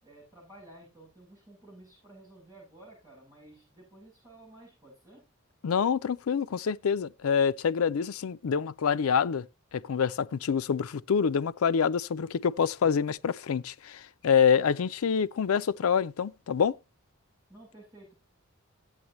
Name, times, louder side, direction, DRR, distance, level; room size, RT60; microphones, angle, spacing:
voice 1, 0.0-5.2 17.5-18.3, right 1 dB, 15° right, 8.0 m, -53 dB
voice 2, 5.6-9.5 9.7-16.8, left 7 dB, 85° left, 0.4 m, -26 dB
14.0 x 8.7 x 3.0 m
head